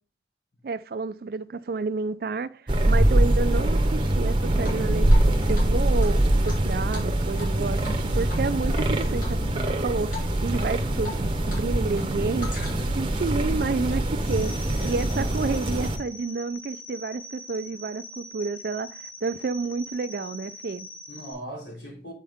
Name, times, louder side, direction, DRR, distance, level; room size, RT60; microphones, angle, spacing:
voice 1, 0.6-12.5 12.9-14.5 14.8-20.9, right 4 dB, 55° right, 0.4 m, -30 dB
sound 1, 2.7-16.0, right 1 dB, 25° right, 0.8 m, -23 dB
Drip, 4.6-5.3 5.5-5.6 6.0-7.5 7.8-8.0 8.3-8.8 9.2-9.7 10.1-10.3 10.6-11.6 11.9-13.0, left 2 dB, 45° left, 3.1 m, -40 dB
sound 2, 14.2-21.3, left 1 dB, 25° left, 3.3 m, -43 dB
voice 2, 14.7-16.0 21.1-22.1, equal, 75° left, 3.2 m, -40 dB
8.5 x 4.6 x 3.5 m
head